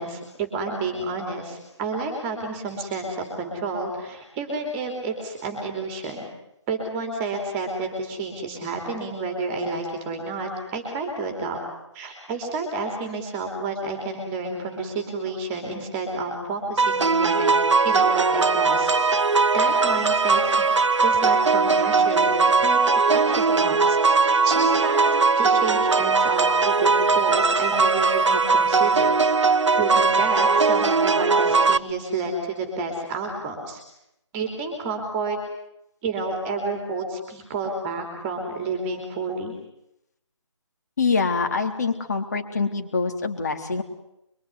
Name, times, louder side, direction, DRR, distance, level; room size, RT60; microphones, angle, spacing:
voice 1, 0.0-6.3 6.7-11.6 11.9-17.5 17.8-19.2 19.5-20.7 21.0-29.2 29.8-33.8 34.3-35.4 36.0-39.6, right 3 dB, 10° right, 4 dB, 3.1 m, -30 dB
sound 1, 16.8-31.8, right 4 dB, 75° right, 1.2 m, -20 dB
voice 2, 41.0-43.8, left 4 dB, 35° left, 5 dB, 3.6 m, -25 dB
24.5 x 23.5 x 9.7 m, 0.83 s
hypercardioid pair, 170°, 16 cm